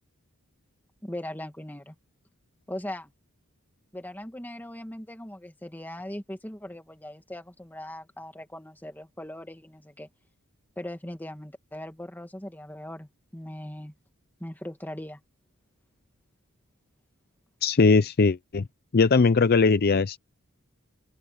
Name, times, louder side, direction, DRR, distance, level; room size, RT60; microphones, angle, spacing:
voice 1, 1.0-1.9 2.7-3.1 3.9-10.1 10.8-13.9 14.4-15.2, left 1 dB, 10° left, 2.2 m, -39 dB
voice 2, 17.6-18.7 18.9-20.2, left 4 dB, 45° left, 0.5 m, -20 dB
open air
head